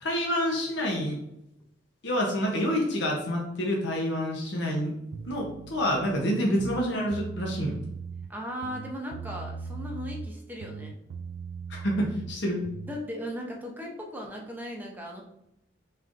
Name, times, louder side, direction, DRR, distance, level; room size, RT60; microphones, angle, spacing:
voice 1, 0.0-1.2 2.0-4.9 5.2-7.8 11.7-12.6, equal, 60° left, -1 dB, 0.8 m, -28 dB
sound 1, 5.1-6.2 6.5-8.3 8.6-10.3 10.6-13.0, right 5 dB, 80° right, 0.3 m, -39 dB
voice 2, 8.3-10.9 12.9-15.2, equal, 10° right, -1 dB, 0.7 m, -37 dB
4.4 x 3.6 x 2.5 m, 0.81 s
head